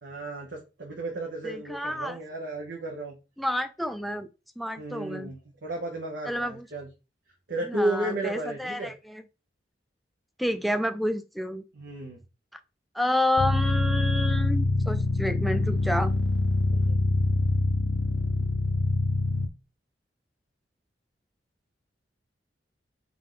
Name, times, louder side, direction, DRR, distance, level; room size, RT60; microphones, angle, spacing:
voice 1, 0.0-3.1 4.8-6.9 7.5-8.9 11.7-12.2 16.7-17.0, right 2 dB, 75° right, 1.1 m, -33 dB
voice 2, 1.4-2.2 3.4-4.3 4.6-5.3 6.3-6.7 7.7-9.2 10.4-11.6 12.9-16.1, left 1 dB, ahead, 0.4 m, -29 dB
sound 1, 13.4-19.5, left 2 dB, 90° left, 0.6 m, -25 dB
3.7 x 3.6 x 3.8 m
head